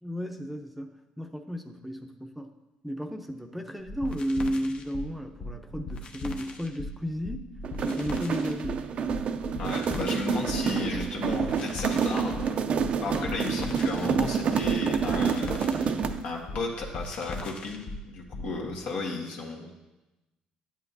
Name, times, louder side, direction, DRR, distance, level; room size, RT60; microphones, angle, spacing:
voice 1, 0.0-2.5 2.8-7.5 7.8-8.8, equal, 5° right, 4 dB, 0.7 m, -33 dB
sound 1, 3.9-18.6, left 2 dB, 50° left, 0.8 m, -39 dB
sound 2, 7.6-16.3, right 6 dB, 55° right, 0.5 m, -28 dB
voice 2, 9.6-12.7 13.0-15.5 16.2-19.7, left 3 dB, 70° left, 0 dB, 1.5 m, -34 dB
9.3 x 8.1 x 2.7 m, 1.0 s
supercardioid pair, 80°, 2 cm